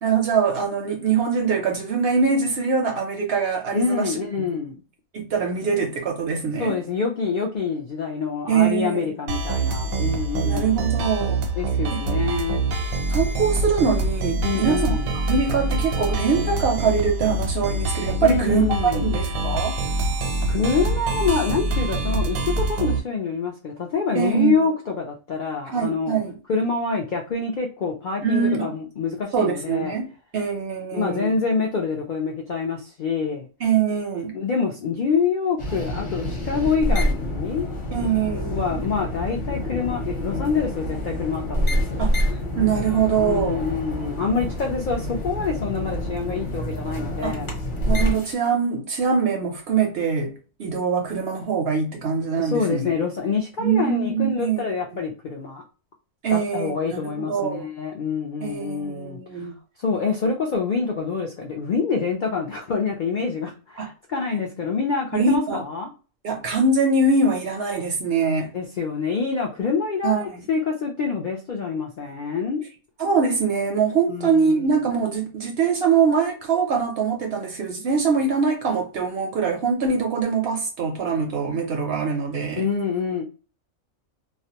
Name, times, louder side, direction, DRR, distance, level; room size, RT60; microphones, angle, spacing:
voice 1, 0.0-4.2 5.1-6.8 8.5-9.0 10.4-11.4 11.9-12.0 13.1-15.0 15.3-19.8 24.1-24.5 25.7-26.3 28.2-28.7 29.3-31.3 33.6-34.3 37.9-38.6 42.0-43.6 47.2-47.3 47.9-50.3 50.6-52.9 53.6-54.7 56.2-57.7 58.4-59.5 63.8-63.9 65.1-65.6 66.2-68.5 70.0-70.4 73.0-82.7, right 5 dB, 60° right, 0.7 m, -23 dB
voice 2, 3.7-4.8 6.6-10.8 11.6-12.6 14.4-15.1 18.2-19.1 20.1-20.2 20.5-26.2 26.5-29.9 30.9-33.5 34.3-37.7 38.5-42.0 43.2-47.5 52.4-55.6 56.3-59.5 59.8-65.9 68.5-72.6 74.1-74.6 82.6-83.2, left 5 dB, 75° left, 0.4 m, -26 dB
sound 1, 9.3-23.0, right 2 dB, 85° right, 1.0 m, -25 dB
sound 2, 35.6-48.3, equal, 45° left, 0.8 m, -27 dB
2.4 x 2.1 x 2.8 m
omnidirectional pair, 1.4 m